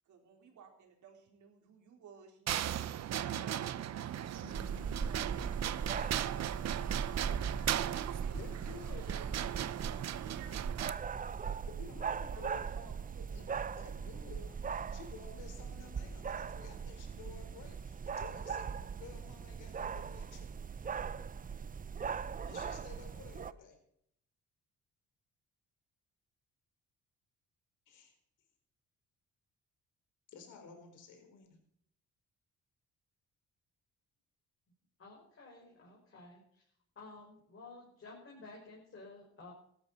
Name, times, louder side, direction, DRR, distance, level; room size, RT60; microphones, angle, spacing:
voice 1, 0.1-2.8 3.1-6.4 6.7-10.6 11.1-11.7 12.1-13.5, right 7 dB, 75° right, 2 dB, 4.3 m, -57 dB
sound 1, 2.5-10.9, right 11 dB, 60° right, 0.8 m, -37 dB
voice 2, 4.4-5.0 8.3-9.3 11.7-12.7 13.3-20.5 22.4-23.8 27.9-28.1 30.3-31.6, left 5 dB, 85° left, 5 dB, 4.3 m, -52 dB
sound 2, 4.5-23.5, right 6 dB, 30° right, 0.6 m, -40 dB
voice 3, 35.0-36.6 37.0-39.5, left 3 dB, 45° left, -3 dB, 5.6 m, -53 dB
16.5 x 13.0 x 4.2 m, 0.69 s
cardioid pair, 90°, 30 cm